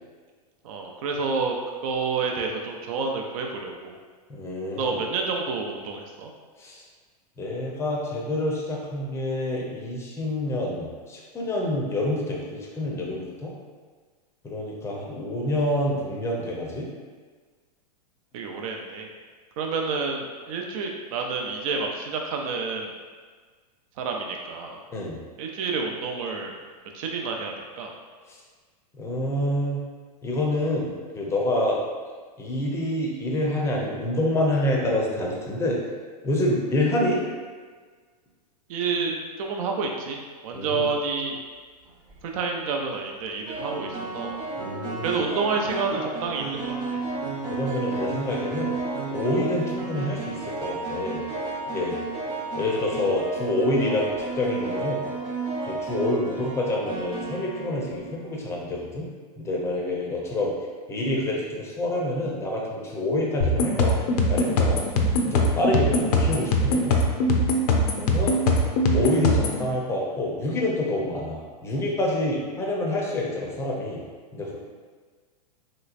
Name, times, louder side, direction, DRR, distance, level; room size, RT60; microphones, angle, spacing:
voice 1, 0.6-1.6 1.8-4.0 4.8-6.3 18.3-19.1 19.6-22.9 24.0-24.8 25.4-26.5 26.9-28.0 38.7-41.4 42.2-44.4 45.0-47.0, right 4 dB, 60° right, 1 dB, 0.5 m, -29 dB
voice 2, 4.3-5.0 6.6-6.8 7.4-13.5 14.4-16.9 24.9-25.2 28.3-28.4 28.9-29.8 30.2-31.8 32.4-35.8 36.2-37.2 40.5-40.8 44.6-45.2 47.5-48.7 49.1-51.2 51.7-52.0 52.5-55.1 55.7-59.1 59.4-60.5 60.9-64.8 65.3-66.9 68.0-68.4 68.9-74.0 74.3-74.6, left 1 dB, 15° left, -3 dB, 0.6 m, -27 dB
sound 1, 41.9-42.2 43.5-58.3, right 3 dB, 20° right, 0.7 m, -32 dB
sound 2, 63.4-69.6, left 1 dB, 70° left, 0.5 m, -22 dB
3.2 x 2.9 x 2.5 m, 1.5 s
hypercardioid pair, 125°, 21 cm